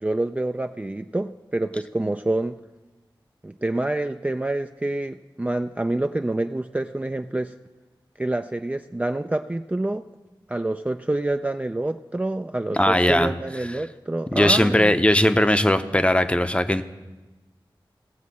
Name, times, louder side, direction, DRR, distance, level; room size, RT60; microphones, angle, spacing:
voice 1, 0.0-2.6 3.4-7.5 8.2-10.1 10.5-14.9, right 2 dB, 15° right, 7 dB, 0.3 m, -27 dB
voice 2, 12.8-13.3 14.3-16.8, left 1 dB, 15° left, 9 dB, 0.6 m, -19 dB
17.5 x 7.4 x 4.2 m, 1.1 s
cardioid pair, 45°, 9 cm